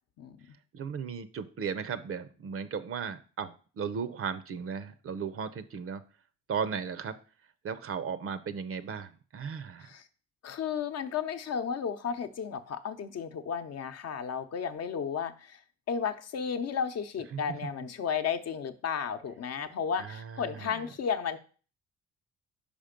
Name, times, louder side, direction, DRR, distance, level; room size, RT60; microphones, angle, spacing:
voice 1, 0.7-6.0 6.5-7.2 7.6-9.9 17.3-17.4 20.0-20.9, right 6 dB, 50° right, 0.6 m, -36 dB
voice 2, 10.4-15.6 15.9-21.4, left 7 dB, 55° left, 0.8 m, -33 dB
5.1 x 5.1 x 5.1 m
cardioid pair, 90°, 30 cm